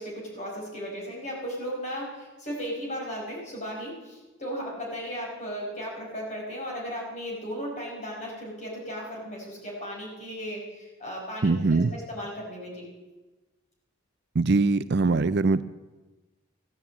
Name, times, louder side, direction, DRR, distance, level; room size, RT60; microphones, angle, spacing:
voice 1, 0.0-12.9, equal, 35° left, -2 dB, 5.4 m, -36 dB
voice 2, 11.4-11.9 14.3-15.6, right 3 dB, 50° right, 14 dB, 0.5 m, -22 dB
15.5 x 11.0 x 8.4 m, 1.2 s
head